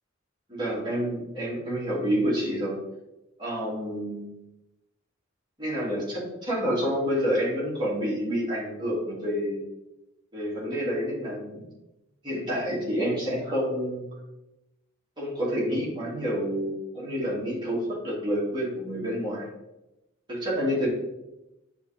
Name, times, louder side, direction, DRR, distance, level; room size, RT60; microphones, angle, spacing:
voice 1, 0.5-2.8 3.4-4.3 5.6-9.6 10.3-11.7 12.2-14.1 15.2-19.5 20.3-20.9, equal, 20° right, -7 dB, 2.7 m, -28 dB
10.0 x 4.3 x 3.6 m, 0.94 s
head